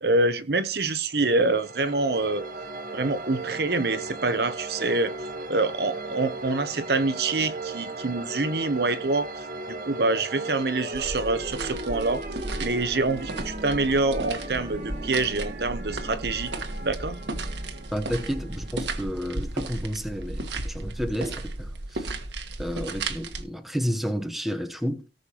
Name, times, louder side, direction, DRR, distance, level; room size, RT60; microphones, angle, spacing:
voice 1, 0.0-2.4 2.9-5.1 5.5-9.3 9.7-12.2 12.6-16.5 16.8-17.2, right 3 dB, 65° right, 0.9 m, -26 dB
sound 1, 1.1-19.8, right 2 dB, 50° right, 1.6 m, -37 dB
sound 2, 10.9-23.4, right 2 dB, 85° right, 1.4 m, -35 dB
voice 2, 17.9-22.1 22.6-25.0, equal, ahead, 0.9 m, -31 dB
18.0 x 6.5 x 3.0 m
head